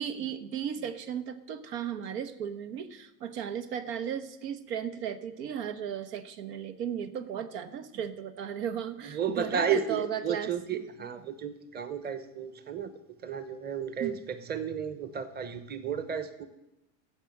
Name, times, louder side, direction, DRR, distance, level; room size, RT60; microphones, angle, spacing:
voice 1, 0.0-10.8 14.0-14.2, right 8 dB, 75° right, 10 dB, 1.2 m, -35 dB
voice 2, 9.0-12.9 13.2-16.5, right 7 dB, 20° right, 12 dB, 1.0 m, -33 dB
13.0 x 7.7 x 7.7 m, 0.92 s
supercardioid pair, 110°, 49 cm